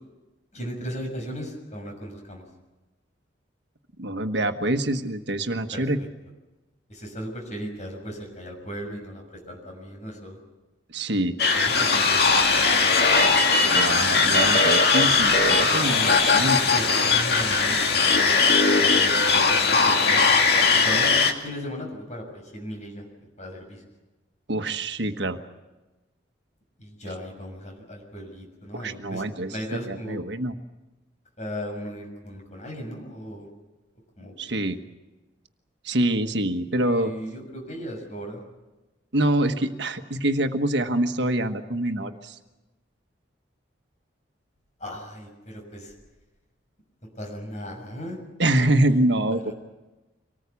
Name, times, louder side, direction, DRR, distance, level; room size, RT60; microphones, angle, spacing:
voice 1, 0.5-2.4 5.7-5.9 6.9-10.4 11.5-12.6 16.6-20.5 20.8-23.8 26.8-29.2 29.5-30.2 31.4-33.5 34.2-34.6 36.8-38.4 44.8-45.9 47.1-48.2 48.7-49.5, equal, 40° left, 2 dB, 6.6 m, -37 dB
voice 2, 4.0-6.0 10.9-11.4 13.7-16.6 24.5-25.4 28.8-29.5 29.8-30.5 34.4-34.8 35.8-37.1 39.1-42.3 48.4-49.5, right 1 dB, 70° right, 7 dB, 1.4 m, -25 dB
sound 1, 11.4-21.3, left 4 dB, 55° left, 2.3 m, -19 dB
25.0 x 19.5 x 8.4 m, 1.1 s
head